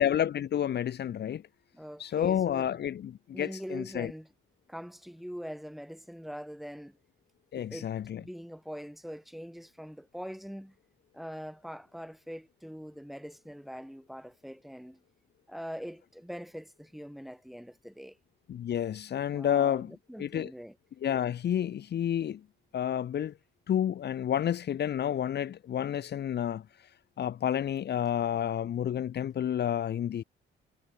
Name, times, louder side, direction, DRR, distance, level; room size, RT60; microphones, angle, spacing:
voice 1, 0.0-1.4 2.0-4.1 7.5-8.2 18.5-19.9 20.2-20.5 21.0-22.4 22.7-23.3 23.7-26.6 27.2-30.2, left 10 dB, 55° left, 1.2 m, -30 dB
voice 2, 1.7-2.7 3.3-4.3 4.7-7.0 7.5-10.8 11.1-15.0 15.5-18.2 19.3-20.8, equal, ahead, 4.2 m, -43 dB
cardioid pair, 90°, 20 cm